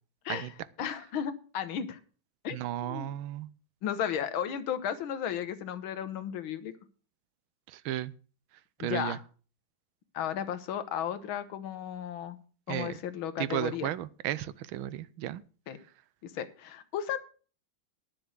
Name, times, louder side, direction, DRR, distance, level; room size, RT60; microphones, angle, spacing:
voice 1, 0.3-2.0 2.4-3.1 3.8-6.7 8.8-9.2 10.1-12.4 12.7-13.9 15.7-15.8 16.2-17.2, left 9 dB, 85° left, 1.8 m, -34 dB
voice 2, 2.5-3.5 7.7-8.1 8.8-9.2 12.7-13.0 13.4-15.4, right 13 dB, 85° right, 1.5 m, -34 dB
10.0 x 7.0 x 7.6 m
omnidirectional pair, 2.2 m